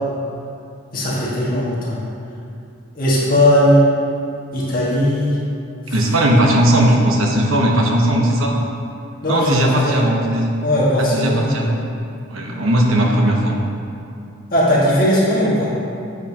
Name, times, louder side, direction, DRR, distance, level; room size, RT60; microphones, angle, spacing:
voice 1, 0.9-2.0 2.9-3.8 4.5-5.4 5.9-6.0 9.2-10.0 10.6-11.7 14.5-15.7, equal, 40° left, -7 dB, 1.9 m, -17 dB
voice 2, 5.9-8.6 9.3-10.5 11.0-11.8 12.3-13.5, right 1 dB, 80° right, 0 dB, 1.1 m, -17 dB
9.1 x 7.8 x 3.0 m, 2.5 s
head